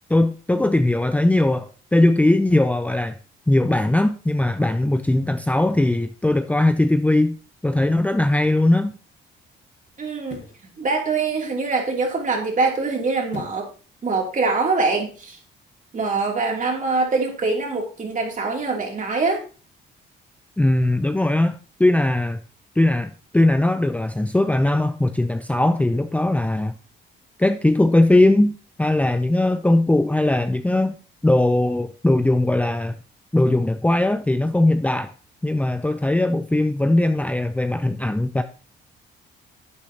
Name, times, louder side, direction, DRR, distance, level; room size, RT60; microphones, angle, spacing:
voice 1, 0.1-3.2 3.5-7.4 7.6-8.9 20.6-22.4 22.8-26.7 27.4-31.0 31.2-33.0 33.3-35.1 35.4-38.4, left 1 dB, 5° left, 0.6 m, -19 dB
voice 2, 10.0-10.4 10.8-13.7 14.0-15.4 15.9-19.4, right 3 dB, 40° right, 2.9 m, -23 dB
sound 1, 10.2-10.7 13.3-13.8 14.2-14.3, left 7 dB, 65° left, 1.5 m, -38 dB
11.0 x 8.5 x 2.9 m
cardioid pair, 90°, 20 cm